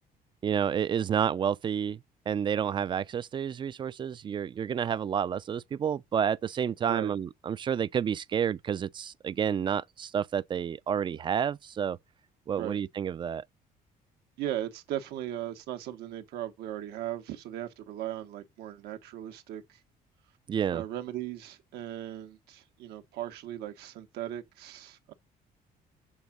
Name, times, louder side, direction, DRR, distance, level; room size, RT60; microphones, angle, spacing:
voice 1, 0.4-2.0 2.3-12.0 12.5-13.4 20.5-20.8, right 8 dB, 30° right, 0.3 m, -30 dB
voice 2, 14.4-19.8 20.7-25.1, right 12 dB, 90° right, 1.4 m, -37 dB
7.1 x 3.8 x 5.9 m
cardioid pair, 135°, 16 cm